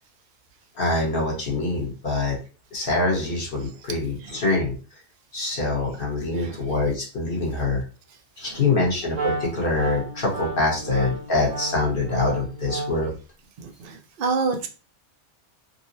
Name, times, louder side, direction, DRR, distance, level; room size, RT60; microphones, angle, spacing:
voice 1, 0.7-2.4 2.7-5.0 5.3-7.8 8.4-13.1, left 2 dB, 50° left, 1.1 m, -25 dB
Wind instrument woodwind instrument, 9.1-13.2, right 2 dB, 75° right, 1.0 m, -32 dB
voice 2, 13.6-14.7, right 4 dB, 55° right, 0.7 m, -27 dB
3.9 x 2.0 x 2.5 m
omnidirectional pair, 1.3 m